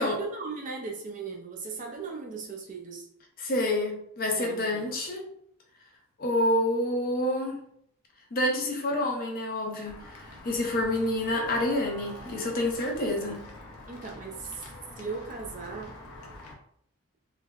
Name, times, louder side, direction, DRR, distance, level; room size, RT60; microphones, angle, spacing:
voice 1, 0.0-3.1 4.4-4.9 13.9-14.6 15.0-16.0, right 4 dB, 35° right, 1 dB, 0.4 m, -37 dB
voice 2, 3.4-5.2 6.2-7.6 8.3-13.4, left 1 dB, 40° left, 0 dB, 0.6 m, -28 dB
Walk footsteps / Bell, 9.8-16.5, left 2 dB, 85° left, 0.6 m, -45 dB
3.3 x 2.0 x 2.3 m, 0.69 s
head